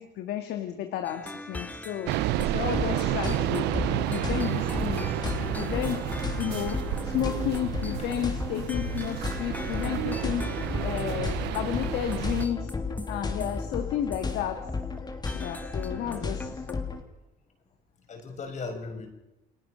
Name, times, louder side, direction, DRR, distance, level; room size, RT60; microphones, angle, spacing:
voice 1, 0.0-3.7 4.1-5.1 5.6-6.1 6.4-10.5 10.8-12.7 13.1-14.7 15.3-16.8, left 11 dB, 80° left, 6 dB, 1.9 m, -32 dB
sound 1, 1.0-14.3 14.7-15.0 15.3-16.7, left 1 dB, 10° left, 1.6 m, -42 dB
sound 2, 2.1-12.5, right 14 dB, 90° right, 0.8 m, -31 dB
sound 3, 2.6-17.0, left 4 dB, 25° left, 3.1 m, -34 dB
voice 2, 18.1-19.1, left 4 dB, 45° left, 4 dB, 5.7 m, -38 dB
29.5 x 18.5 x 6.4 m, 0.96 s
cardioid pair, 110°, 17 cm